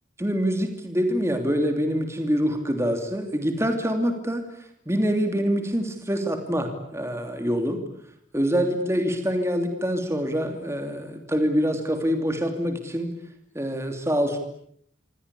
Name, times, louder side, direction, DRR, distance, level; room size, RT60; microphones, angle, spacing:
voice 1, 0.2-4.4 4.9-7.8 8.3-13.1 13.5-14.4, equal, 15° right, 6 dB, 2.9 m, -25 dB
27.0 x 25.5 x 8.4 m, 0.69 s
head